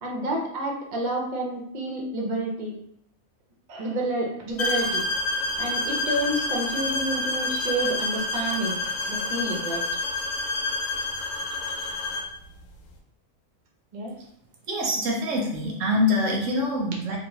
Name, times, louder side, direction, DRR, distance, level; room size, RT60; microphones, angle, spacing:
voice 1, 0.0-2.7 3.7-5.1 5.6-9.8 13.9-14.1, right 1 dB, 45° right, -1 dB, 0.6 m, -29 dB
sound 1, 4.6-12.3, left 2 dB, 80° left, 1.0 m, -28 dB
voice 2, 14.7-17.2, left 1 dB, 75° right, 0 dB, 1.0 m, -25 dB
2.9 x 2.1 x 3.0 m, 0.73 s
omnidirectional pair, 1.4 m